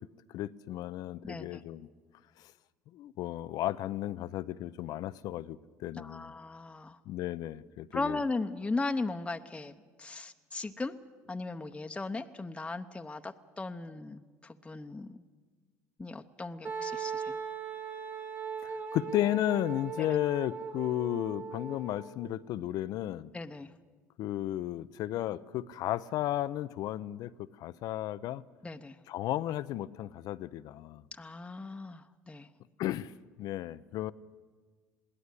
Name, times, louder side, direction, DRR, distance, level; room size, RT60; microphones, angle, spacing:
voice 1, 0.3-1.9 2.4-2.5 2.9-6.3 7.1-8.2 18.6-23.3 24.2-28.4 29.1-31.0 32.8-33.1 33.4-34.1, left 13 dB, 65° left, 15 dB, 0.6 m, -34 dB
voice 2, 1.2-1.6 6.0-7.0 7.9-11.0 11.3-15.2 16.0-17.4 20.0-20.2 23.3-23.7 28.6-29.0 31.1-32.5, left 3 dB, 15° left, 6 dB, 0.9 m, -37 dB
Wind instrument woodwind instrument, 16.6-22.3, right 5 dB, 30° right, 2.5 m, -39 dB
21.5 x 16.5 x 8.3 m, 1.5 s
hypercardioid pair, 70°, 7 cm